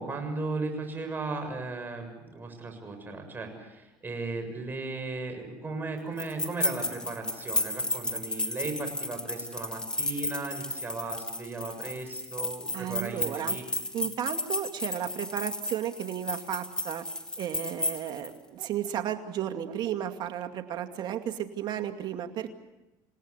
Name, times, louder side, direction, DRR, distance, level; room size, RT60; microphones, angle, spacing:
voice 1, 0.0-13.6, right 3 dB, 20° right, 5 dB, 7.0 m, -36 dB
sound 1, 6.2-18.3, left 1 dB, 10° left, 2.6 m, -33 dB
voice 2, 12.7-13.6 13.9-17.1 17.4-22.5, right 10 dB, 50° right, 7 dB, 2.4 m, -33 dB
28.5 x 18.0 x 8.3 m, 1.0 s
supercardioid pair, 105°, 9 cm